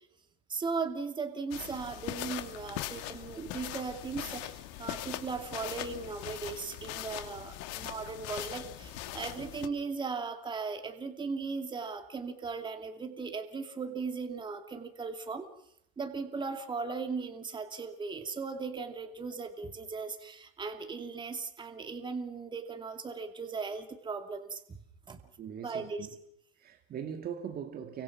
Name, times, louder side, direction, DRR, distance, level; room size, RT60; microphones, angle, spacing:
voice 1, 0.5-15.5 16.0-24.8 25.1-25.2 25.6-26.1, right 4 dB, 15° right, 2.6 m, -37 dB
sound 1, 1.5-9.7, left 14 dB, 55° left, 2.8 m, -41 dB
voice 2, 25.4-26.1 26.6-28.0, right 8 dB, 30° right, 2.3 m, -40 dB
29.0 x 25.0 x 6.0 m
supercardioid pair, 145°, 30 cm